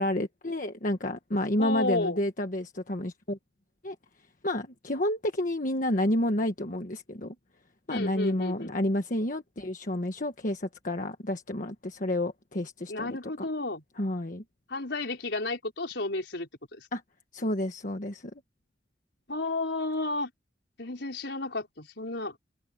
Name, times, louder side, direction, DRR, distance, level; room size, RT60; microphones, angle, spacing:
voice 1, 0.0-3.4 3.8-4.0 4.4-7.3 7.9-13.4 14.0-14.4 16.9-17.0 17.3-18.3, left 1 dB, 45° left, 1.4 m, -30 dB
voice 2, 1.6-2.2 7.9-8.8 12.9-13.8 14.7-16.9 19.3-20.3 20.8-22.4, left 2 dB, 70° left, 5.5 m, -32 dB
open air
head